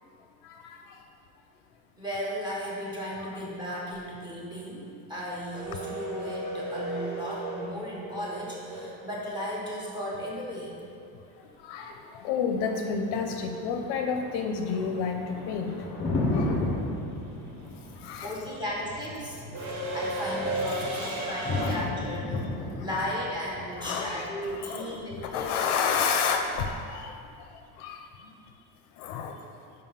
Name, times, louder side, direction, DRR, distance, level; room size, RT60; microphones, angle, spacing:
voice 1, 0.4-0.8 3.2-3.3 7.2-7.3 11.6-15.7 16.3-16.6 18.0-18.4 21.0-21.1 21.6-21.9 22.8-22.9 23.8-27.1 27.8-28.0 29.0-29.3, left 6 dB, 60° left, 4 dB, 0.6 m, -30 dB
voice 2, 2.0-10.7 18.2-19.6 19.9-22.5 22.8-25.6, equal, 10° right, -5 dB, 1.0 m, -35 dB
sound 1, 5.5-9.6 12.0-12.1 13.4-13.7 14.0-21.8, right 1 dB, 85° right, 1.2 m, -36 dB
Thunder, 12.6-26.6, left 2 dB, 15° left, 0.6 m, -35 dB
5.2 x 3.7 x 5.6 m, 2.4 s
cardioid pair, 155°, 46 cm